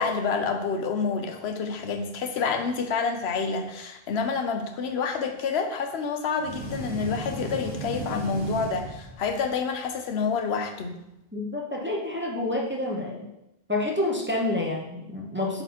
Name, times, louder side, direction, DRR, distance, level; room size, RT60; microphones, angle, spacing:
voice 1, 0.0-11.0, left 5 dB, 90° left, 6 dB, 0.9 m, -28 dB
sound 1, 6.4-9.5, right 2 dB, 35° right, 2.2 m, -35 dB
voice 2, 11.3-13.3 13.7-15.6, left 2 dB, 10° right, -2 dB, 0.7 m, -28 dB
7.8 x 4.2 x 2.9 m, 0.88 s
omnidirectional pair, 1.1 m